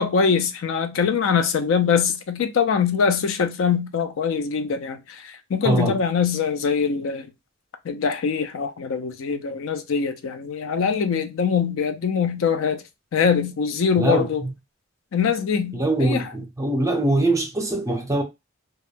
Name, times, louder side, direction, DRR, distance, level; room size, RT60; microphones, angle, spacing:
voice 1, 0.0-7.3 7.8-12.8 13.1-14.4 15.1-16.3, left 6 dB, 65° left, 0.4 m, -23 dB
voice 2, 5.6-6.0 14.0-14.5 15.7-18.2, right 2 dB, 15° right, 0.5 m, -23 dB
2.3 x 2.1 x 3.2 m
head